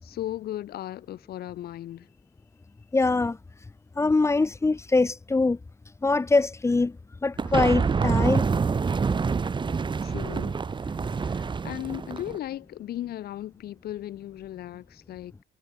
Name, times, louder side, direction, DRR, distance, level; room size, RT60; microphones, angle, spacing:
voice 1, 0.0-2.1 10.0-15.3, left 13 dB, 65° left, 5.0 m, -37 dB
voice 2, 2.9-3.4 4.0-5.6 6.0-7.0 7.2-8.4, left 3 dB, 15° left, 1.0 m, -23 dB
sound 1, 7.4-12.4, right 5 dB, 30° right, 2.3 m, -26 dB
cardioid pair, 110°, 17 cm